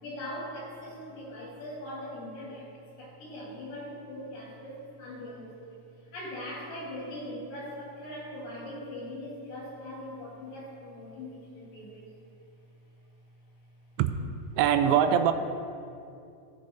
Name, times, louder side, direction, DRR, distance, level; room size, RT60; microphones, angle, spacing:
voice 1, 0.0-12.1, left 1 dB, 60° left, -6 dB, 3.4 m, -41 dB
voice 2, 14.6-15.3, right 9 dB, 85° right, 9 dB, 2.8 m, -22 dB
17.5 x 6.3 x 3.1 m, 2.5 s
omnidirectional pair, 4.9 m